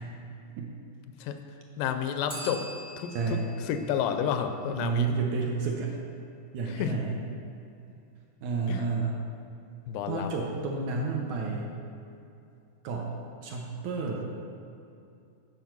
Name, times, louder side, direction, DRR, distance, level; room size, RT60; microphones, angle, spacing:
voice 1, 1.8-2.7 3.0-3.4 3.7-5.1 6.7-7.0 8.7-8.9 9.9-10.3, left 8 dB, 90° left, 7 dB, 2.2 m, -30 dB
Bell, 2.3-5.1, right 1 dB, 20° left, 0.4 m, -45 dB
voice 2, 3.1-3.5 4.8-5.9 6.5-7.2 8.4-9.2 10.1-11.7 12.8-13.1 13.4-14.2, right 4 dB, 75° right, -1 dB, 1.9 m, -30 dB
8.3 x 4.6 x 5.9 m, 2.6 s
omnidirectional pair, 3.7 m